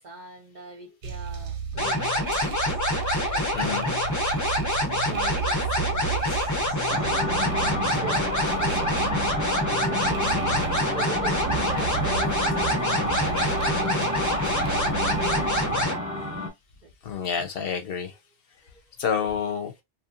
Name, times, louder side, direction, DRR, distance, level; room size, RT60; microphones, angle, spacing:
voice 1, 0.0-2.6 3.1-9.2 9.8-15.7 16.8-17.2 18.1-18.2, right 4 dB, 60° right, 0.5 m, -42 dB
sound 1, 1.0-15.9, right 5 dB, 90° right, 1.0 m, -34 dB
sound 2, 1.8-16.0, left 1 dB, 30° left, 0.3 m, -26 dB
voice 2, 3.5-3.9 10.5-10.6 17.1-18.1 19.0-19.7, left 7 dB, 65° left, 0.7 m, -28 dB
sound 3, 6.9-16.5, left 1 dB, 5° right, 0.7 m, -30 dB
2.8 x 2.3 x 2.4 m
omnidirectional pair, 1.2 m